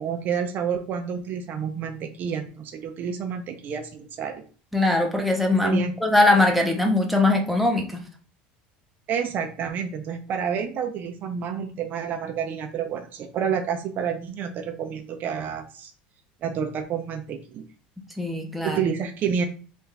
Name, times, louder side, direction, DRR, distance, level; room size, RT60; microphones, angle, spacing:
voice 1, 0.0-4.3 5.6-5.9 9.1-15.9 16.4-17.6 18.6-19.4, right 7 dB, 45° right, 6 dB, 0.5 m, -29 dB
voice 2, 4.7-8.0 18.2-18.8, left 2 dB, ahead, 1 dB, 0.7 m, -21 dB
3.4 x 2.4 x 3.2 m, 0.39 s
supercardioid pair, 110°, 4 cm